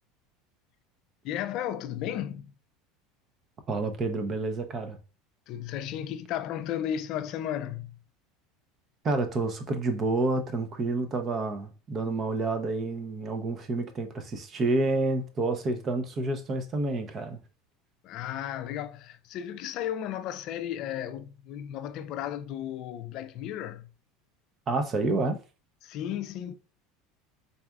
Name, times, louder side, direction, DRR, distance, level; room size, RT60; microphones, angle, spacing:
voice 1, 1.2-2.5 5.5-8.0 18.0-23.9 25.8-26.5, left 10 dB, 55° left, 0.4 m, -34 dB
voice 2, 3.7-5.0 9.0-17.4 24.7-25.4, right 3 dB, 35° right, 0.7 m, -29 dB
4.1 x 3.4 x 2.3 m
supercardioid pair, 110°, 0 cm